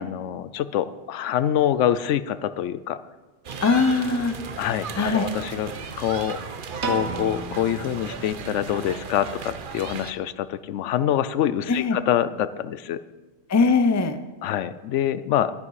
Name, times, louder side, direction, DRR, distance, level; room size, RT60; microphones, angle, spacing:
voice 1, 0.0-3.0 4.6-5.7 6.0-6.4 6.8-13.0 14.4-15.5, left 11 dB, 85° left, 15 dB, 0.9 m, -25 dB
sound 1, 3.4-10.1, right 6 dB, 50° right, 0.9 m, -36 dB
voice 2, 3.6-4.4 5.0-5.3 11.7-12.0 13.5-14.2, left 4 dB, 25° left, 10 dB, 0.4 m, -20 dB
Piano, 6.8-9.1, right 3 dB, 65° right, 1.5 m, -33 dB
12.5 x 11.0 x 4.8 m, 1.2 s
omnidirectional pair, 1.2 m